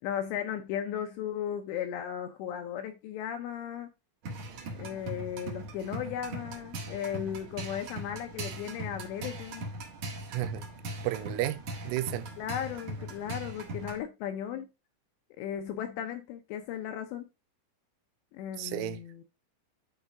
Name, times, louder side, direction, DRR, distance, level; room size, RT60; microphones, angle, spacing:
voice 1, 0.0-3.9 4.7-9.7 12.4-14.7 15.4-17.2 18.3-19.2, left 9 dB, 80° left, 2.6 m, -36 dB
sound 1, 4.2-14.0, right 1 dB, 65° right, 1.7 m, -40 dB
voice 2, 10.3-10.6 11.0-12.3 18.6-19.0, right 15 dB, 90° right, 3.2 m, -32 dB
11.0 x 4.1 x 3.5 m
omnidirectional pair, 5.7 m